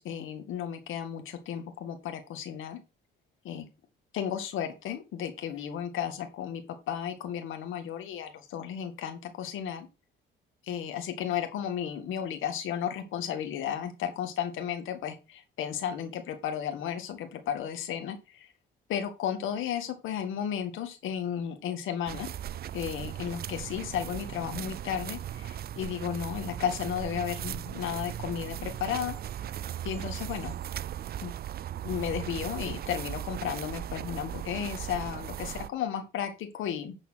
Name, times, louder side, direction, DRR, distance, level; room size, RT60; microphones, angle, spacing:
voice 1, 0.0-2.8 3.4-3.7 4.1-6.6 6.9-9.9 10.7-18.5 18.9-22.3 22.7-29.2 29.8-30.6 31.2-31.3 31.8-37.0, left 9 dB, 85° left, 7 dB, 1.9 m, -34 dB
sound 1, 22.1-35.7, right 11 dB, 50° right, 0.5 m, -38 dB
11.0 x 4.3 x 5.7 m, 0.28 s
cardioid pair, 90°, 20 cm